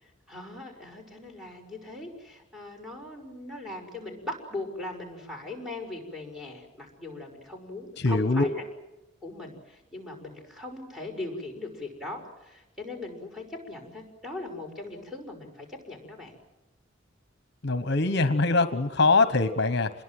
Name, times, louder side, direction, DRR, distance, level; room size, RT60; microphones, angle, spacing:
voice 1, 0.0-8.6 9.2-16.4, left 2 dB, ahead, 2 dB, 6.0 m, -40 dB
voice 2, 8.0-8.5 17.6-20.0, left 3 dB, 55° left, 11 dB, 1.1 m, -23 dB
28.0 x 21.5 x 7.8 m, 0.99 s
head